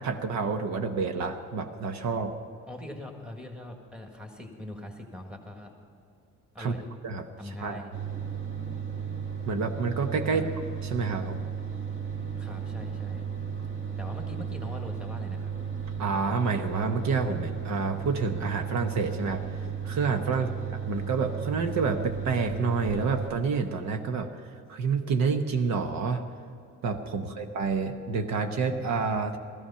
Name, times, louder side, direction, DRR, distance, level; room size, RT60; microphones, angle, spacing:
voice 1, 0.0-2.3 6.6-6.8 7.0-7.8 9.4-10.4 10.8-11.4 16.0-20.5 20.9-24.3 24.7-26.2 26.8-29.4, right 4 dB, 60° right, 5 dB, 1.1 m, -28 dB
voice 2, 2.7-5.7 6.5-6.9 7.4-7.9 10.3-10.5 12.4-13.3 14.0-15.5 20.3-20.5 27.2-27.4, left 1 dB, 5° right, 2 dB, 1.7 m, -42 dB
sound 1, 7.9-23.3, right 7 dB, 40° right, 2.1 m, -34 dB
17.5 x 14.5 x 5.7 m, 2.5 s
cardioid pair, 150°, 32 cm